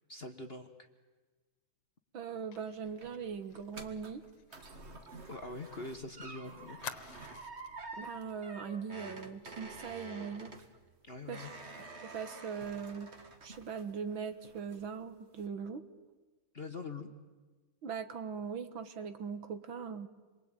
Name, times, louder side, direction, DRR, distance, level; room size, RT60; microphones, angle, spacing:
voice 1, 0.1-0.7 5.3-6.8 11.1-11.5 16.5-17.1, left 3 dB, 30° left, 6 dB, 1.4 m, -43 dB
voice 2, 2.1-4.2 8.0-10.5 11.3-11.5 12.0-13.1 13.4-15.8 17.8-20.1, right 6 dB, 65° right, 10 dB, 2.2 m, -40 dB
Fire, 2.5-6.0 6.2-6.3 6.8-7.8 8.2-8.4 8.7-8.9, left 8 dB, 85° left, 2.2 m, -50 dB
sound 1, 2.6-14.1 14.4-15.0 15.4-15.5, right 3 dB, 30° right, 2.0 m, -49 dB
28.5 x 23.0 x 9.1 m, 1.3 s
omnidirectional pair, 2.4 m